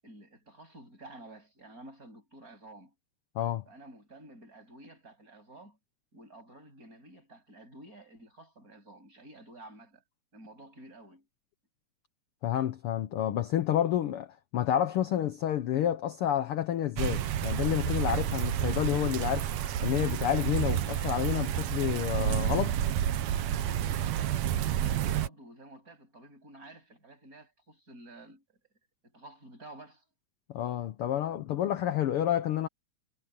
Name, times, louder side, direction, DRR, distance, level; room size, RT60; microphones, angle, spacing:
voice 1, 0.0-2.9 3.7-5.8 6.1-10.0 10.3-11.3 24.7-28.6 29.0-30.0, right 1 dB, 25° right, 8.5 m, -51 dB
voice 2, 12.4-14.3 14.5-19.5 19.8-22.8 30.5-32.7, left 11 dB, 65° left, 1.4 m, -29 dB
sound 1, 17.0-25.3, right 10 dB, 70° right, 2.1 m, -30 dB
omnidirectional pair, 3.5 m